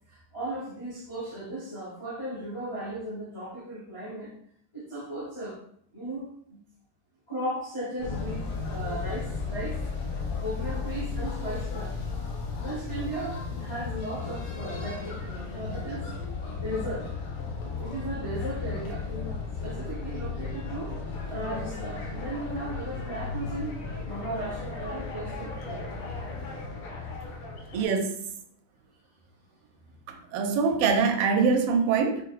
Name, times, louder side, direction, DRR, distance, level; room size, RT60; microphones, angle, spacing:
voice 1, 0.1-4.3 4.7-5.6 5.9-6.6 7.3-9.8 10.4-12.0 12.6-17.1 17.8-21.0 21.3-26.0, right 1 dB, 40° left, -5 dB, 0.4 m, -36 dB
sound 1, 8.0-27.9, left 4 dB, 75° left, 1.6 m, -35 dB
voice 2, 27.7-28.1 30.1-32.2, right 5 dB, 85° right, 5 dB, 1.5 m, -24 dB
5.1 x 2.4 x 2.4 m, 0.64 s
omnidirectional pair, 2.4 m